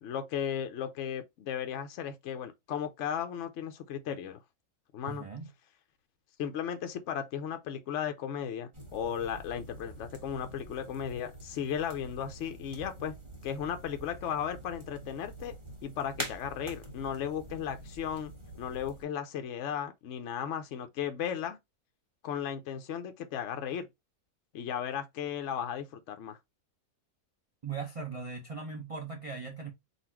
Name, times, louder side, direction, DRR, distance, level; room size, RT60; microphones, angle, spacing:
voice 1, 0.0-4.4 4.9-5.2 6.4-13.1 13.4-15.5 15.8-18.3 18.6-21.6 22.2-23.9 24.5-26.4, left 8 dB, 65° left, 0.7 m, -35 dB
voice 2, 5.0-5.5 27.6-29.7, right 5 dB, 50° right, 0.4 m, -39 dB
sound 1, 8.7-19.0, right 1 dB, 20° right, 1.3 m, -45 dB
4.0 x 2.4 x 4.4 m
omnidirectional pair, 1.7 m